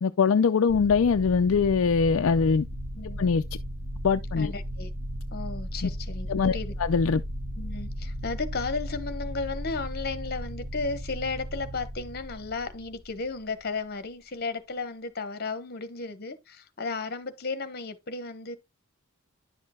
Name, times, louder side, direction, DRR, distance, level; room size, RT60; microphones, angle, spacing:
voice 1, 0.0-2.7 3.2-3.4 4.0-4.5 5.8-5.9 6.3-7.2, left 5 dB, 65° left, 0.4 m, -22 dB
sound 1, 0.7-13.7, equal, 50° right, 1.7 m, -36 dB
voice 2, 4.4-4.9 5.3-6.7 7.6-18.6, left 4 dB, 45° left, 1.2 m, -34 dB
10.5 x 6.6 x 2.3 m
head